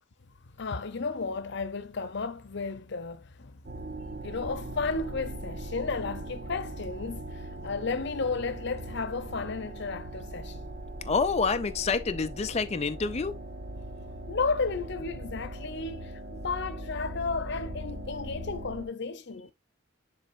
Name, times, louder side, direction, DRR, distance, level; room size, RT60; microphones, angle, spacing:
voice 1, 0.6-3.6 4.2-10.7 14.3-19.5, left 4 dB, 60° left, 0.8 m, -33 dB
sound 1, 3.6-18.9, right 1 dB, 45° right, 1.0 m, -40 dB
voice 2, 11.0-13.4, left 4 dB, 35° left, 0.4 m, -27 dB
9.8 x 4.0 x 2.6 m
head